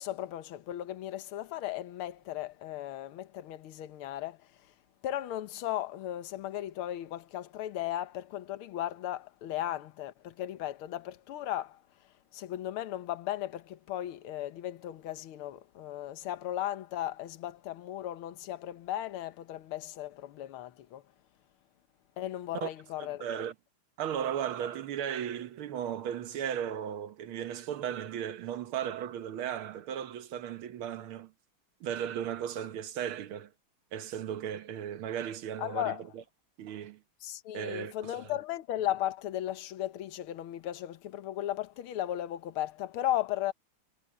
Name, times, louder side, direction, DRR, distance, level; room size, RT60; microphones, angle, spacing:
voice 1, 0.0-4.5 5.0-11.8 12.3-21.0 22.2-23.3 35.6-36.1 37.2-43.5, left 13 dB, 80° left, 1.8 m, -36 dB
voice 2, 23.0-23.5 24.0-31.3 31.8-33.5 33.9-36.2 36.6-37.0 37.5-38.1, right 9 dB, 80° right, 2.0 m, -36 dB
omnidirectional pair, 2.3 m